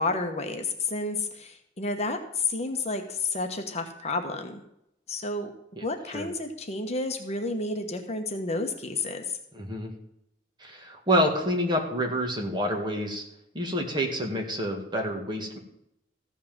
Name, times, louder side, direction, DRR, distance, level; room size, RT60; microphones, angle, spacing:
voice 1, 0.0-4.6 5.1-5.5 5.8-9.2, left 3 dB, 35° left, 5 dB, 1.2 m, -30 dB
voice 2, 9.5-9.9 10.6-13.2 13.5-15.6, equal, 25° right, 1 dB, 2.0 m, -28 dB
14.5 x 5.8 x 7.3 m, 0.80 s
head